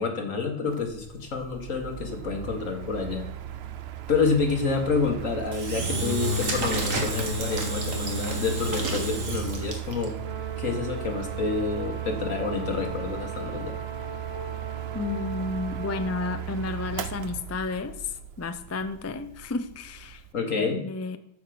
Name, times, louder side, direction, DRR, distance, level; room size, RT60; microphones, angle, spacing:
voice 1, 0.0-3.3 4.1-10.1 10.6-13.8 20.3-20.8, left 4 dB, 85° left, 2.2 m, -28 dB
Mechanical fan, 0.7-20.3, right 12 dB, 60° right, 0.8 m, -37 dB
Engine / Drill, 5.5-10.0, right 1 dB, 85° right, 2.2 m, -29 dB
Brass instrument, 10.1-16.5, right 4 dB, 30° right, 0.7 m, -39 dB
voice 2, 14.9-18.0 18.4-20.2 20.6-21.2, left 3 dB, 25° left, 0.3 m, -32 dB
13.0 x 5.0 x 6.0 m
omnidirectional pair, 1.3 m